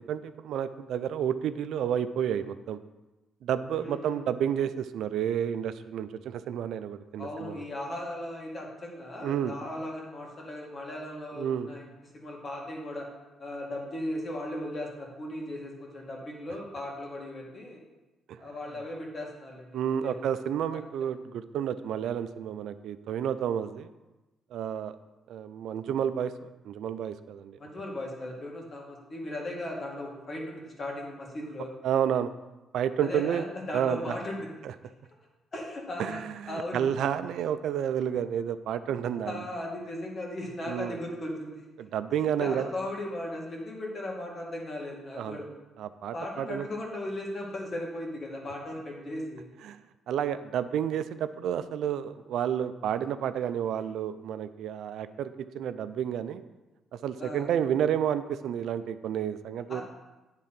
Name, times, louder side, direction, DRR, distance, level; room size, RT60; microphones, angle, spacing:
voice 1, 0.0-2.8 3.4-7.6 9.2-9.5 11.4-11.7 18.3-18.4 19.7-23.9 24.5-24.9 25.3-27.6 31.8-32.3 32.7-33.4 33.7-34.2 34.6-34.7 36.0-39.4 40.6-41.0 41.8-42.7 45.2-45.4 45.8-46.7 49.6-49.8 50.1-56.4 57.0-59.8, right 9 dB, 75° right, 12 dB, 0.4 m, -30 dB
voice 2, 3.7-4.2 7.2-11.8 12.1-13.1 13.4-17.8 18.4-20.1 27.6-31.7 33.0-34.5 35.5-36.2 36.5-36.8 39.3-41.6 42.4-45.5 46.1-49.5 57.2-57.5 59.7-59.8, left 1 dB, 45° left, -1 dB, 2.0 m, -37 dB
9.0 x 3.7 x 5.8 m, 1.1 s
cardioid pair, 90°, 0 cm